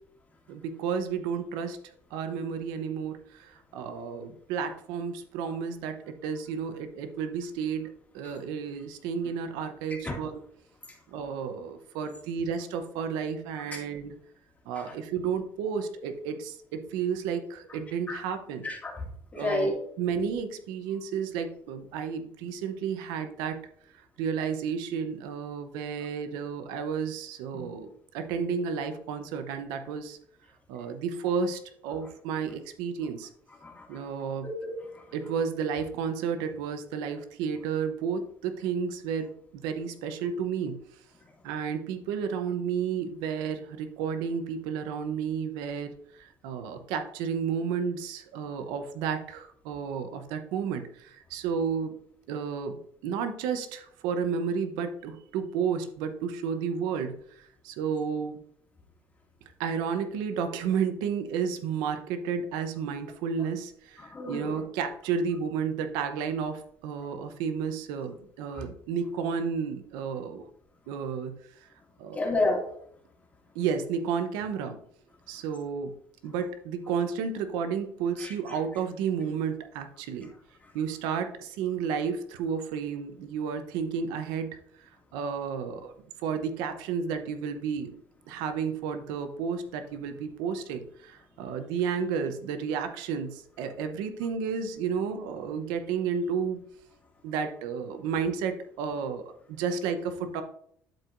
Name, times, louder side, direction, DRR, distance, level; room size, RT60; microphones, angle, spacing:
voice 1, 0.5-1.8 2.1-7.9 8.1-10.4 11.1-14.1 14.7-18.7 19.3-23.6 24.2-30.2 30.7-33.3 33.9-34.5 35.1-40.8 41.4-45.9 46.2-51.9 52.3-57.2 57.6-58.4 59.6-70.5 70.9-71.4 72.0-72.3 73.5-74.8 75.3-75.9 76.2-80.3 80.7-85.9 86.2-87.9 88.3-96.6 97.2-100.4, right 6 dB, 90° right, 8 dB, 0.8 m, -32 dB
voice 2, 18.6-19.0 19.3-19.7 27.5-27.7 33.6-34.0 34.4-35.0 64.0-64.6 68.5-68.6 72.1-72.7 78.2-78.3, left 2 dB, 20° left, 0 dB, 2.2 m, -31 dB
11.5 x 4.7 x 2.6 m, 0.66 s
cardioid pair, 115°, 7 cm